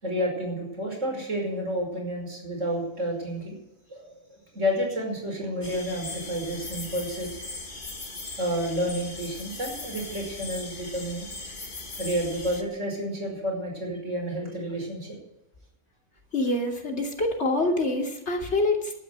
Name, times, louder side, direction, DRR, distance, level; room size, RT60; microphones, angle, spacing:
voice 1, 0.0-3.6 3.9-7.3 8.4-11.3 12.0-15.2, equal, 80° right, 0 dB, 5.8 m, -30 dB
sound 1, 5.6-12.6, left 2 dB, 45° left, 1.7 m, -39 dB
voice 2, 16.3-18.9, left 2 dB, 65° left, 0 dB, 3.0 m, -26 dB
12.0 x 10.0 x 8.1 m, 0.95 s
omnidirectional pair, 1.2 m